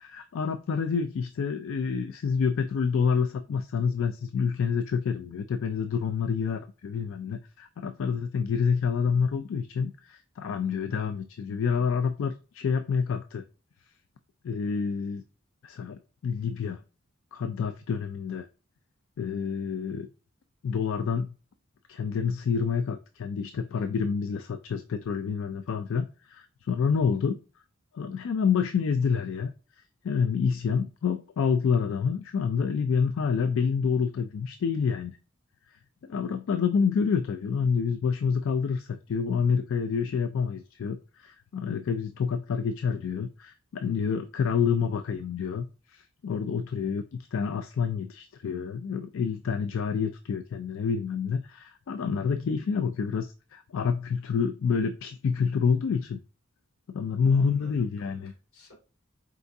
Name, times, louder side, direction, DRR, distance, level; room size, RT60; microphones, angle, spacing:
voice 1, 0.0-13.4 14.4-15.2 15.6-16.8 17.3-18.5 19.2-20.1 20.6-21.3 21.9-27.4 27.9-29.5 30.0-35.2 36.0-56.2 56.9-58.3, left 6 dB, 65° left, 9 dB, 0.3 m, -28 dB
voice 2, 57.3-58.7, left 1 dB, 85° left, -1 dB, 2.2 m, -54 dB
4.8 x 3.4 x 2.6 m, 0.34 s
head